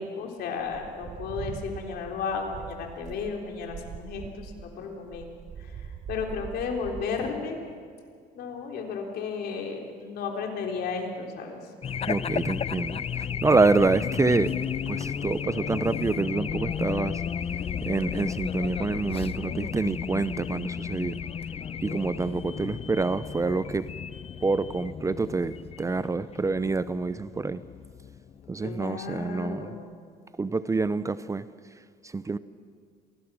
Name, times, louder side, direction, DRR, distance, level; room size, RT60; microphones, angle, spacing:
voice 1, 0.0-5.3 5.6-7.6 8.3-11.7 28.6-29.9, left 5 dB, 70° left, 3.8 m, -34 dB
sound 1, 0.6-7.1, right 7 dB, 45° right, 1.1 m, -42 dB
Race car auto racing / Alarm, 11.8-28.8, left 7 dB, 35° left, 0.6 m, -33 dB
voice 2, 12.1-14.6 14.9-17.2 17.8-21.2 21.8-23.9 24.4-27.6 28.5-29.8 30.4-31.5 32.0-32.4, right 3 dB, 20° right, 0.6 m, -27 dB
27.0 x 19.5 x 6.3 m
cardioid pair, 110°, 17 cm